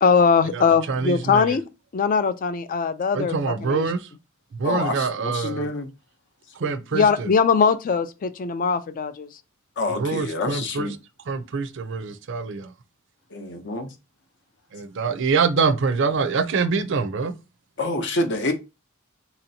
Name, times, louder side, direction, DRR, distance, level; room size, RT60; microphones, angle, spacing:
voice 1, 0.0-3.9 6.9-9.3, left 5 dB, 40° left, 0.4 m, -21 dB
voice 2, 0.9-1.4 3.1-4.0 4.6-5.7 6.6-7.3 10.0-10.9 11.3-12.7 14.7-17.3, right 4 dB, 60° right, 0.5 m, -25 dB
voice 3, 4.6-5.9 9.8-10.9 13.3-13.9 17.8-18.5, left 2 dB, 60° left, 0.7 m, -27 dB
4.2 x 2.8 x 2.7 m
head